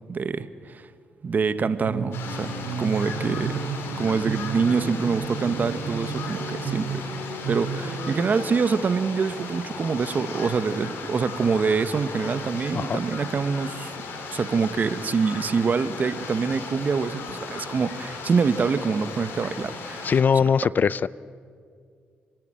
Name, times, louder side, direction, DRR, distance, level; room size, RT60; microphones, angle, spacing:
voice 1, 0.1-0.9 1.2-2.5 2.8-3.6 4.0-7.1 7.5-13.9 14.3-20.1, right 5 dB, 50° right, 13 dB, 1.1 m, -25 dB
sound 1, 1.8-8.2, right 5 dB, 80° right, 6.4 m, -32 dB
sound 2, 2.1-20.2, left 4 dB, 80° left, 2.9 m, -37 dB
voice 2, 20.0-21.1, left 6 dB, 50° left, 21 dB, 0.4 m, -21 dB
29.5 x 11.0 x 8.9 m, 2.1 s
cardioid pair, 65°, 4 cm